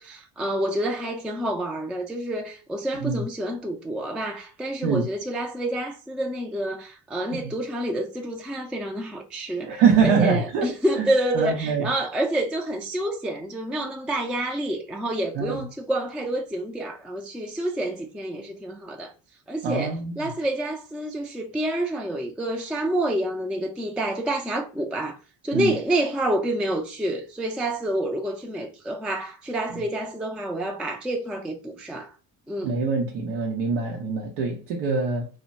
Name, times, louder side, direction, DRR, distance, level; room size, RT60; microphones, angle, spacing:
voice 1, 0.0-19.1 19.5-25.2 25.4-32.1 32.5-32.7, right 1 dB, ahead, 0.4 m, -28 dB
voice 2, 9.7-10.7 11.0-11.9 15.4-15.7 19.6-20.3 25.5-25.7 29.7-29.8 32.6-35.3, right 5 dB, 80° right, 0.7 m, -24 dB
2.2 x 2.2 x 3.8 m
hypercardioid pair, 60°, 49 cm